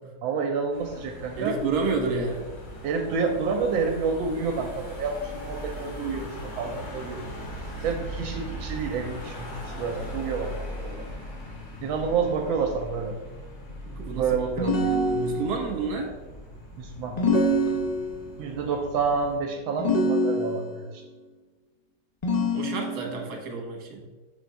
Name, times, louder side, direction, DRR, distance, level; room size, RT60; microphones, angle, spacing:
voice 1, 0.2-1.6 2.8-7.2 7.8-11.1 11.8-13.2 14.2-14.8 16.8-17.2 18.4-21.0, right 5 dB, 80° right, 3 dB, 1.4 m, -29 dB
Car passing by / Engine, 0.7-19.4, equal, 70° left, 2.4 m, -39 dB
voice 2, 1.4-2.5 13.8-14.3 14.7-16.1 17.6-17.8 22.5-24.0, right 4 dB, 55° right, 1 dB, 1.6 m, -30 dB
sound 1, 14.6-15.7 17.2-18.3 19.8-20.8 22.2-23.2, left 1 dB, 50° left, 0.4 m, -25 dB
5.9 x 3.4 x 5.2 m, 1.3 s
omnidirectional pair, 2.2 m